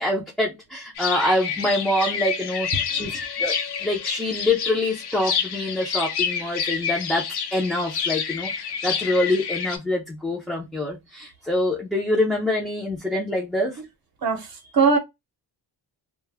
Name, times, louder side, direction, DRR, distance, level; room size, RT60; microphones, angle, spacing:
voice 1, 0.0-7.3 7.5-13.8, left 1 dB, ahead, 0.4 m, -25 dB
sound 1, 1.0-9.8, left 7 dB, 70° left, 0.7 m, -28 dB
voice 2, 2.7-3.2 14.2-15.0, right 5 dB, 60° right, 0.7 m, -22 dB
2.2 x 2.0 x 3.3 m
wide cardioid pair, 165°, 40 cm